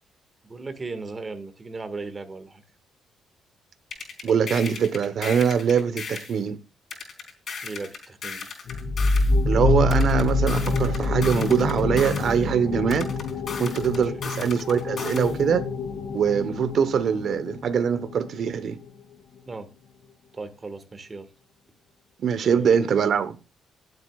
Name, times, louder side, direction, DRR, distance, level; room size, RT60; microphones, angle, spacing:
voice 1, 0.4-2.6 7.6-8.5 13.9-14.1 19.5-19.7 20.3-21.3 22.4-22.9, right 3 dB, 30° right, 1.8 m, -37 dB
sound 1, 3.9-6.4 6.9-9.4 9.9-12.4 12.9-15.4, left 5 dB, 50° left, 4.2 m, -36 dB
voice 2, 4.2-6.6 9.4-13.1 13.6-15.7 16.1-18.8 22.2-23.4, right 7 dB, 60° right, 1.1 m, -23 dB
sound 2, 8.7-18.0, left 3 dB, 70° left, 2.3 m, -26 dB
19.5 x 8.1 x 2.4 m
cardioid pair, 90°, 0 cm